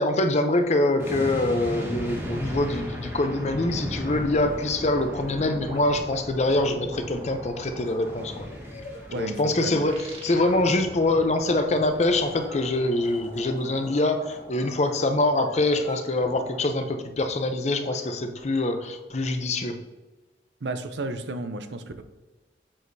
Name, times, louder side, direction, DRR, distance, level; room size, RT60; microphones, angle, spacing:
voice 1, 0.0-8.5 9.2-19.8, left 2 dB, 40° left, 7 dB, 0.6 m, -24 dB
sound 1, 0.6-4.8 5.2-15.9 16.2-16.6 17.1-19.4, right 1 dB, 35° right, 1.5 m, -45 dB
sound 2, 1.0-14.1 14.4-14.6, equal, 15° right, 1.2 m, -37 dB
sound 3, 7.8-16.0, left 1 dB, 70° left, 2.2 m, -47 dB
voice 2, 9.1-9.9 20.6-22.0, right 2 dB, 75° right, 9 dB, 0.6 m, -32 dB
7.6 x 6.3 x 2.7 m, 1.1 s
head